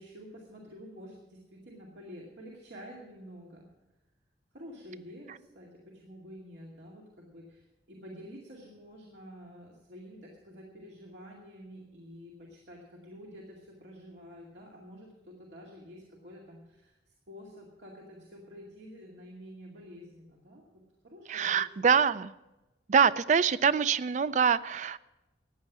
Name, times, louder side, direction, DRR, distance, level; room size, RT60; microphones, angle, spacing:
voice 1, 0.0-3.7 4.5-21.9, equal, 85° right, -3 dB, 2.3 m, -49 dB
voice 2, 21.3-22.3 22.9-25.0, right 6 dB, 45° right, 16 dB, 0.4 m, -25 dB
14.5 x 9.7 x 6.0 m, 1.0 s
head